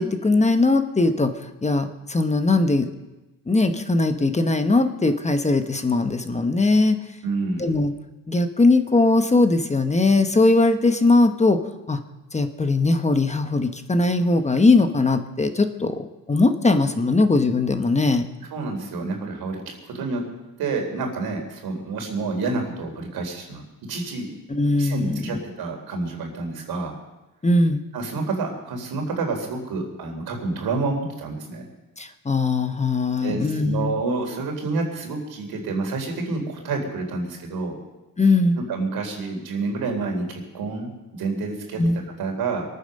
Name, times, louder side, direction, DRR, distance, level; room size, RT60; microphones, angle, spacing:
voice 1, 0.0-2.9 3.5-7.0 7.6-7.9 8.3-11.6 11.9-12.0 12.3-18.3 24.5-25.4 27.4-27.8 32.0-34.0 38.2-38.6 41.8-42.0, left 3 dB, 20° left, 8 dB, 1.1 m, -20 dB
voice 2, 7.2-7.7 18.5-19.6 19.9-20.2 20.6-24.3 24.8-26.9 27.9-31.7 33.2-37.8 38.6-41.8 42.2-42.6, right 3 dB, 85° right, 2 dB, 3.8 m, -28 dB
22.0 x 9.6 x 6.6 m, 1.1 s
cardioid pair, 115°, 36 cm